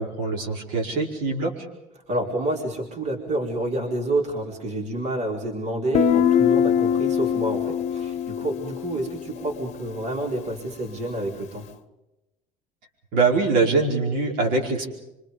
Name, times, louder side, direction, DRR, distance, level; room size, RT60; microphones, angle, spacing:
voice 1, 0.0-1.5 13.1-14.9, right 3 dB, 75° right, 0 dB, 4.9 m, -23 dB
voice 2, 2.1-11.6, right 1 dB, 50° right, 0 dB, 4.4 m, -29 dB
Guitar, 5.9-9.6, left 8 dB, 50° left, 0.9 m, -22 dB
26.0 x 25.5 x 5.3 m, 0.93 s
cardioid pair, 145°, 15 cm